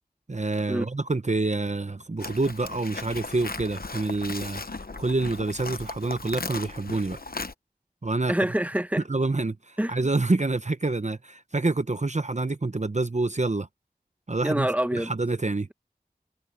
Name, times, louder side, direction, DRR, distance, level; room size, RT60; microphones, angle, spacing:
voice 1, 0.3-4.6 5.0-7.2 8.0-8.3 9.1-13.7 14.3-15.7, right 3 dB, 45° right, 0.8 m, -27 dB
Livestock farm animals working animals, 2.2-7.5, left 3 dB, 65° left, 0.9 m, -37 dB
voice 2, 8.3-9.0 9.8-9.9 14.4-15.1, right 1 dB, 10° right, 1.0 m, -26 dB
wide cardioid pair, 45°, 17 cm